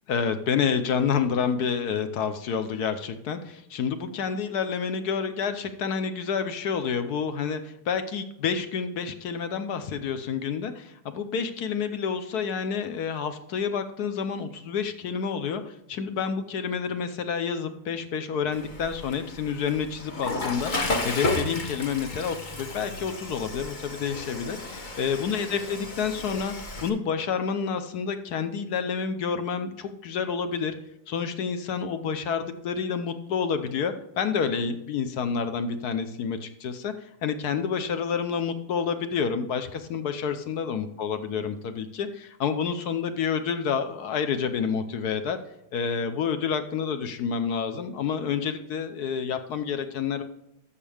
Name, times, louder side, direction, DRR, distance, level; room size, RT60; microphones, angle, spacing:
voice 1, 0.1-26.5 26.8-30.7 31.1-45.4 45.7-50.2, left 6 dB, 65° left, 9 dB, 1.0 m, -29 dB
Water / Toilet flush, 18.5-26.9, left 2 dB, 35° left, 0.8 m, -33 dB
12.5 x 6.7 x 3.4 m, 0.81 s
omnidirectional pair, 2.3 m